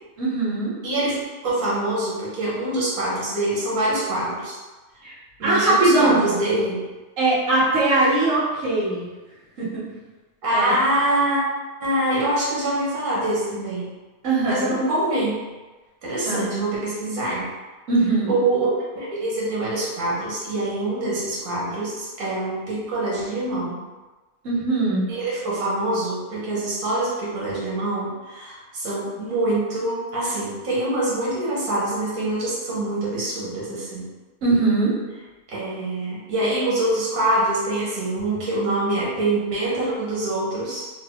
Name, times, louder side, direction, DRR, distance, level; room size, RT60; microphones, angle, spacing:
voice 1, 0.2-0.7 5.0-5.1 5.4-6.2 7.2-9.1 9.6-9.8 10.5-10.7 14.2-14.8 16.3-16.6 17.9-18.3 24.4-25.0 34.4-34.9, right 2 dB, 60° right, -9 dB, 1.6 m, -20 dB
voice 2, 0.8-4.6 5.4-6.8 10.4-11.4 11.8-13.9 14.4-15.4 16.0-17.5 18.3-23.8 25.1-34.1 35.5-40.9, right 1 dB, 90° right, -6 dB, 1.4 m, -25 dB
3.4 x 2.3 x 3.5 m, 1.2 s
omnidirectional pair, 1.5 m